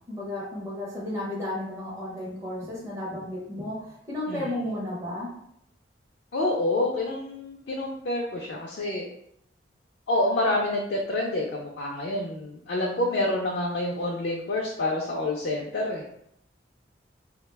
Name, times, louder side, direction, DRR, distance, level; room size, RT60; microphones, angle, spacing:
voice 1, 0.1-5.3, left 1 dB, 15° right, -7 dB, 0.5 m, -33 dB
voice 2, 6.3-9.1 10.1-16.0, left 1 dB, 60° left, -2 dB, 0.4 m, -28 dB
2.3 x 2.1 x 3.2 m, 0.75 s
head